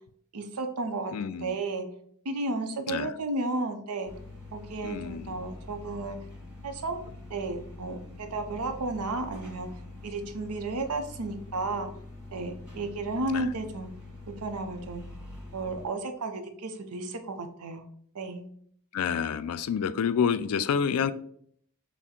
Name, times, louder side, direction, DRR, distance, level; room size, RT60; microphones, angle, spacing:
voice 1, 0.3-1.9 2.2-4.1 4.5-6.2 6.6-7.0 7.3-9.7 10.0-11.9 12.3-13.9 14.4-15.0 15.5-17.8 18.1-18.5, right 2 dB, 90° right, 7 dB, 0.7 m, -33 dB
voice 2, 1.1-1.6 2.9-3.1 4.8-5.4 13.3-13.5 18.9-21.1, left 7 dB, 75° left, 13 dB, 0.4 m, -28 dB
sound 1, 4.0-15.9, left 2 dB, 5° right, 1.7 m, -45 dB
5.9 x 2.1 x 4.2 m, 0.64 s
head